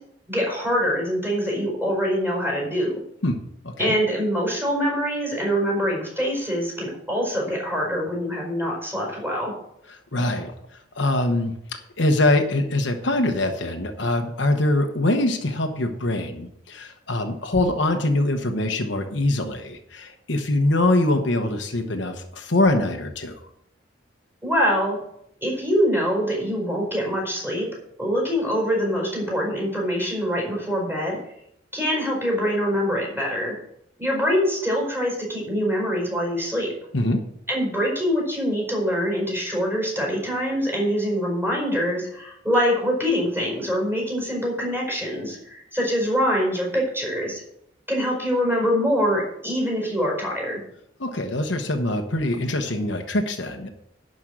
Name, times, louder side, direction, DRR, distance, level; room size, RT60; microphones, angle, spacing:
voice 1, 0.3-3.0 3.8-9.6 24.4-25.0 25.4-27.7 28.0-31.3 31.7-33.6 34.0-36.7 37.5-47.4 47.9-50.6, equal, 10° right, -2 dB, 4.8 m, -24 dB
voice 2, 3.2-3.9 9.9-10.5 10.9-11.5 12.0-23.4 36.9-37.2 51.0-53.7, left 1 dB, 70° left, 5 dB, 1.1 m, -23 dB
11.0 x 5.4 x 7.5 m, 0.76 s
head